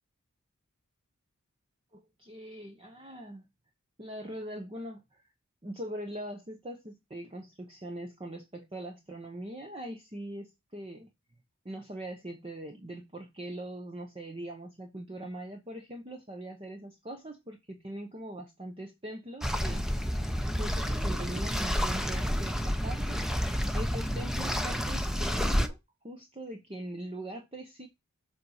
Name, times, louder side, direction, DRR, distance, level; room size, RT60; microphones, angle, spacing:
voice 1, 1.9-3.5 4.0-5.3 5.6-11.1 11.6-19.9 20.6-25.8 26.0-27.9, right 1 dB, 25° right, 1.0 m, -42 dB
sound 1, 19.4-25.7, equal, ahead, 0.7 m, -30 dB
7.7 x 4.2 x 4.7 m
head